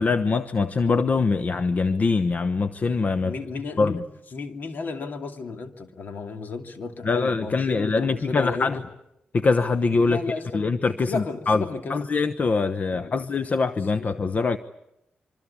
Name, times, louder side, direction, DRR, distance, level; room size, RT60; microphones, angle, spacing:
voice 1, 0.0-3.4 3.8-4.0 7.0-8.8 9.3-11.6 11.9-14.6, left 4 dB, 50° left, 1.0 m, -23 dB
voice 2, 3.2-4.0 4.3-8.7 10.0-10.6 11.1-12.1 12.9-13.2 14.0-14.1, left 4 dB, 65° left, 2.7 m, -33 dB
25.5 x 24.5 x 8.6 m
cardioid pair, 55°, 3 cm